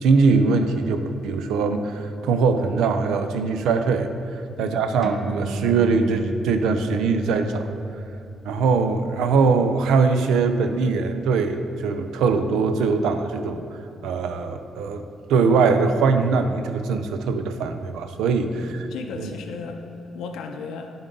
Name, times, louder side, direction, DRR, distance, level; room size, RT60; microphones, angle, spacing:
voice 1, 0.0-4.1 4.6-7.7 8.5-13.6 14.0-15.0 15.3-18.9 19.2-19.4, right 4 dB, 90° right, 8 dB, 0.4 m, -21 dB
sound 1, 5.0-11.9, right 3 dB, 25° right, 0.8 m, -37 dB
voice 2, 18.6-19.8 20.1-20.9, left 5 dB, 85° left, 5 dB, 0.5 m, -35 dB
10.5 x 3.9 x 3.8 m, 2.8 s
cardioid pair, 80°, 0 cm